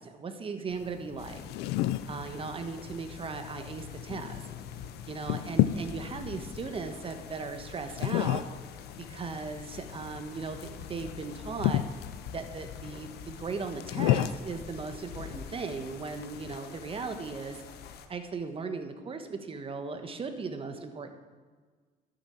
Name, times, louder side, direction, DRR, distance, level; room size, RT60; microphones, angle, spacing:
voice 1, 0.0-1.4 2.1-4.5 5.1-8.4 9.0-11.8 12.3-17.6 18.1-21.1, right 4 dB, 30° right, 7 dB, 1.2 m, -37 dB
sound 1, 0.7-16.6, left 14 dB, 90° left, 0.4 m, -34 dB
sound 2, 1.2-18.1, left 7 dB, 70° left, 1.1 m, -45 dB
11.5 x 7.0 x 7.0 m, 1.5 s
cardioid pair, 110°, 17 cm